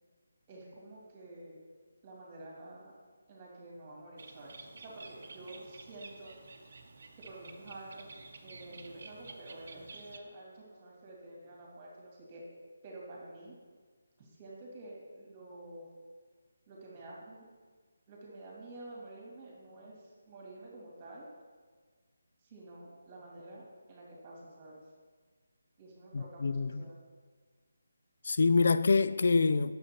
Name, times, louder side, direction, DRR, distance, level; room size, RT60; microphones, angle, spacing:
voice 1, 0.5-1.6 2.0-3.0 3.3-6.4 6.7-6.8 7.2-12.4 12.8-13.5 14.2-15.9 16.7-17.4 18.1-21.2 22.4-24.8 25.8-27.0, right 2 dB, 25° right, 2.3 m, -49 dB
Bird, 4.2-10.2, right 3 dB, 55° right, 0.8 m, -51 dB
voice 2, 26.1-26.9 28.2-29.8, left 4 dB, 60° left, 0.3 m, -26 dB
9.0 x 6.9 x 2.9 m
figure-of-eight pair, 160°, 0 cm